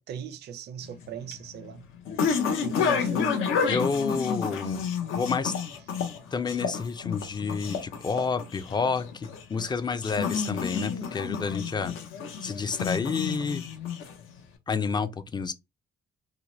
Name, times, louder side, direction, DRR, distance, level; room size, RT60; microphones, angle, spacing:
voice 1, 0.0-1.8 2.6-3.4 12.9-13.2, right 8 dB, 55° right, 0.4 m, -39 dB
sound 1, 0.8-14.4, left 6 dB, 80° left, 0.6 m, -30 dB
voice 2, 3.6-4.8 5.1-5.6 6.3-11.9 12.4-13.6 14.7-15.5, left 5 dB, 20° left, 0.3 m, -29 dB
2.8 x 2.1 x 2.9 m
cardioid pair, 90°, 20 cm